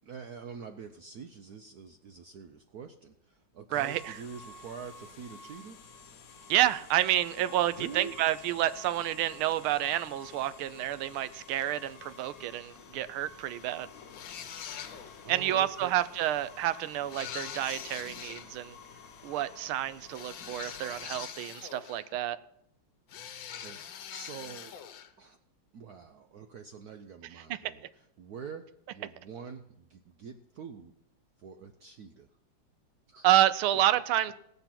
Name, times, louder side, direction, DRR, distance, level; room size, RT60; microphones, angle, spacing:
voice 1, 0.0-5.8 7.8-8.2 15.2-15.9 23.6-24.8 25.2-25.4 25.7-27.9 28.2-30.9 31.4-32.3 33.1-33.3, right 6 dB, 65° right, 7 dB, 1.0 m, -45 dB
sound 1, 3.7-21.2, left 5 dB, 50° left, 1.3 m, -51 dB
voice 2, 3.7-4.2 6.5-13.9 15.3-18.8 19.2-22.4 27.5-27.7 33.2-34.3, right 13 dB, 90° right, 15 dB, 1.5 m, -29 dB
sound 2, 14.1-15.3 17.1-18.5 20.1-22.1 23.1-25.1, left 9 dB, 70° left, 1.6 m, -43 dB
18.0 x 6.9 x 5.9 m, 0.77 s
omnidirectional pair, 2.3 m